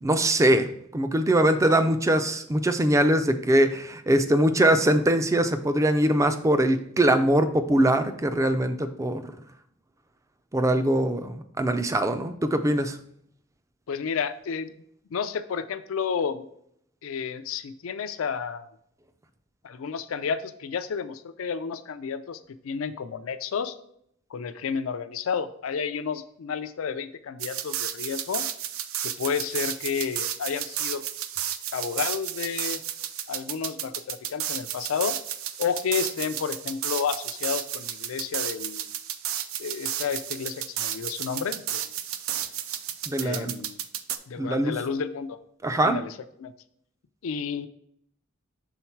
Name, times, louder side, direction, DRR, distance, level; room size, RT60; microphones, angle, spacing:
voice 1, 0.0-0.7 0.9-9.2 10.5-13.0 43.1-43.5 44.4-44.7 45.6-46.0, right 1 dB, 15° right, 9 dB, 0.3 m, -22 dB
voice 2, 13.9-14.7 15.1-16.5 17.0-18.7 19.6-23.8 24.3-28.5 29.0-31.0 31.7-32.8 33.3-35.2 35.6-38.9 39.6-41.8 43.2-43.8 44.3-45.4 45.8-46.5 47.2-47.7, left 6 dB, 80° left, 11 dB, 0.4 m, -31 dB
sound 1, 27.4-44.2, right 10 dB, 85° right, 0.4 m, -32 dB
5.7 x 3.9 x 4.4 m, 0.70 s
head